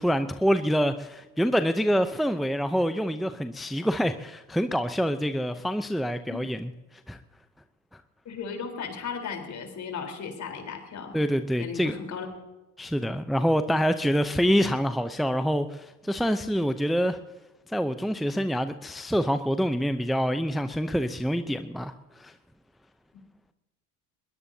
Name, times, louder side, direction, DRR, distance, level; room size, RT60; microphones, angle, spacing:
voice 1, 0.0-6.7 7.1-7.2 11.1-12.0 12.8-17.2 17.7-22.3, equal, ahead, 10 dB, 0.7 m, -26 dB
voice 2, 8.3-11.1 11.6-12.3, left 6 dB, 50° left, 4 dB, 4.1 m, -36 dB
21.0 x 21.0 x 2.8 m, 1.1 s
hypercardioid pair, 70°, 37 cm